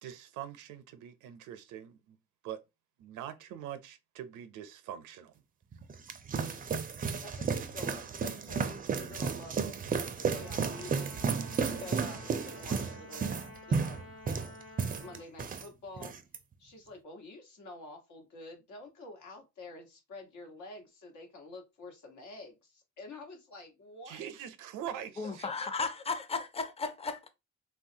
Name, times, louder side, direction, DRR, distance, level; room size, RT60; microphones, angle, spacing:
voice 1, 0.0-2.2 2.4-2.6 3.0-5.3 24.1-25.5, right 10 dB, 90° right, 0.5 m, -43 dB
sound 1, 5.7-15.7 16.0-16.4, right 5 dB, 30° right, 0.4 m, -33 dB
voice 2, 7.2-13.3 13.7-14.0 15.0-16.2 16.6-24.3 25.2-25.9, left 2 dB, 75° left, 1.2 m, -48 dB
Trumpet, 10.2-15.3, left 2 dB, 90° left, 0.9 m, -51 dB
voice 3, 25.2-27.3, left 4 dB, 20° left, 0.5 m, -35 dB
3.1 x 2.3 x 2.7 m
cardioid pair, 90°, 30 cm